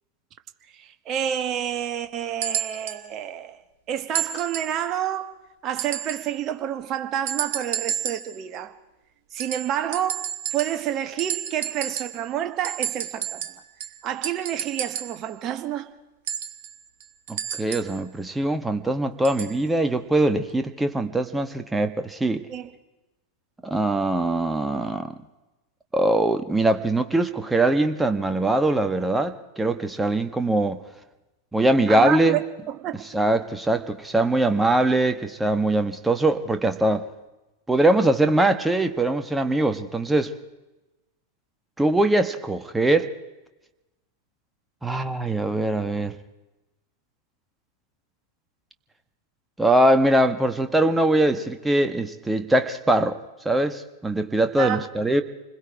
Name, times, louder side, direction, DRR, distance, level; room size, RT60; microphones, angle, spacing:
voice 1, 0.7-3.6 3.9-8.8 9.3-13.5 14.0-15.9 22.5-22.7 31.9-33.1 54.6-54.9, right 10 dB, 35° right, 1.5 m, -29 dB
sound 1, 2.4-3.0 4.1-4.8 5.8-6.3 7.3-8.4 9.4-10.9 11.2-12.3 12.6-15.2 16.3-18.0 19.2-19.6 20.5-20.6, right 9 dB, 55° right, 1.2 m, -31 dB
voice 2, 17.3-22.4 23.6-25.1 25.9-30.8 31.5-32.4 33.1-37.0 37.7-40.3 41.8-43.1 44.8-46.1 49.6-53.2 53.4-55.2, right 1 dB, 5° right, 1.4 m, -22 dB
28.0 x 21.0 x 4.8 m
figure-of-eight pair, 90°, 0 cm